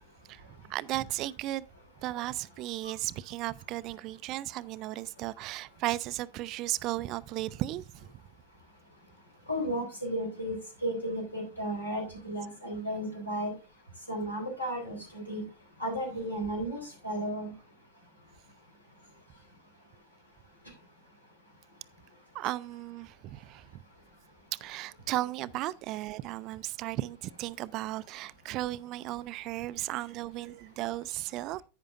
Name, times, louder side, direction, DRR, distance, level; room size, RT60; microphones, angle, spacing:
voice 1, 0.3-1.6 2.0-8.1 22.3-23.8 24.6-31.6, right 16 dB, 40° right, 0.4 m, -35 dB
voice 2, 9.5-10.6 10.8-13.5 14.1-15.4 15.8-17.5, equal, 80° left, 3.6 m, -34 dB
11.0 x 8.9 x 2.5 m
figure-of-eight pair, 90°, 0 cm